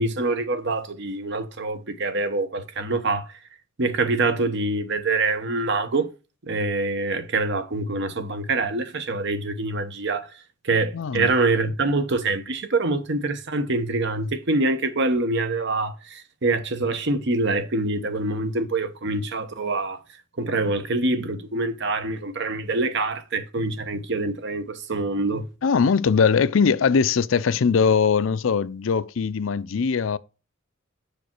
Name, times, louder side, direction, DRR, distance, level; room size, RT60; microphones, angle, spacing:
voice 1, 0.0-3.3 3.8-6.1 6.4-10.3 10.6-20.0 20.4-25.5, right 2 dB, 60° right, 1.0 m, -25 dB
voice 2, 10.9-11.3 25.6-30.2, left 5 dB, 70° left, 0.5 m, -21 dB
7.2 x 5.0 x 4.5 m
head